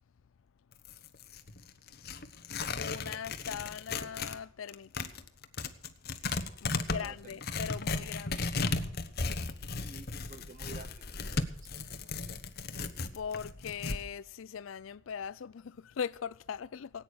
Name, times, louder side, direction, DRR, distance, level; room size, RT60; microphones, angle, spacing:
Tearing, 0.7-4.4 4.7-14.0, left 3 dB, 55° left, 1.1 m, -36 dB
voice 1, 2.8-5.1 6.6-8.5 13.1-17.0, left 7 dB, 90° left, 0.4 m, -40 dB
voice 2, 6.7-7.4 9.6-12.4, right 3 dB, 40° right, 0.9 m, -52 dB
18.0 x 9.1 x 6.4 m
head